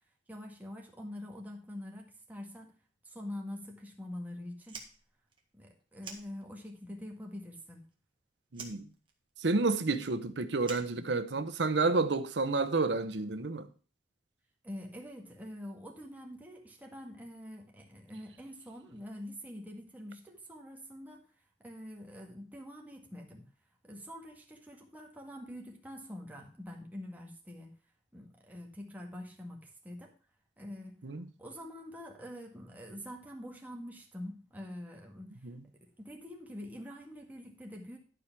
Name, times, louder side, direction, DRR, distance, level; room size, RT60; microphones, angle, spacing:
voice 1, 0.3-2.7 3.0-4.8 5.5-7.9 14.6-21.3 21.6-23.5 23.8-27.7 28.1-30.1 30.6-31.0 31.4-35.5 35.7-38.0, left 1 dB, 10° right, 1.9 m, -45 dB
Fire, 4.6-6.9 7.1-8.1 8.5-11.7, right 5 dB, 30° right, 1.8 m, -49 dB
voice 2, 8.5-8.9 9.4-13.7 31.0-31.2 35.4-35.6, right 3 dB, 90° right, 0.9 m, -30 dB
11.5 x 4.9 x 6.0 m
head